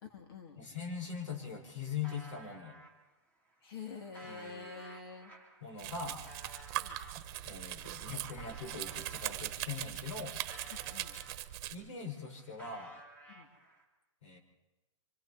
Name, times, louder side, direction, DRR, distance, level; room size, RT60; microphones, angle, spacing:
voice 1, 0.0-0.6 3.6-5.3 6.7-7.0 10.7-11.2 13.3-13.5, left 5 dB, 50° left, 5 dB, 2.6 m, -47 dB
voice 2, 0.6-2.7 4.2-4.7 5.6-6.2 7.4-10.4 11.7-12.9 14.2-14.4, left 6 dB, 75° left, 2 dB, 5.4 m, -41 dB
sound 1, 1.4-2.9 3.5-9.3 9.8-11.7 12.0-13.8, right 1 dB, 10° left, 2.8 m, -55 dB
Domestic sounds home sounds, 5.8-11.8, right 14 dB, 35° right, 1.4 m, -41 dB
26.0 x 25.5 x 4.2 m, 1.1 s
hypercardioid pair, 160°, 16 cm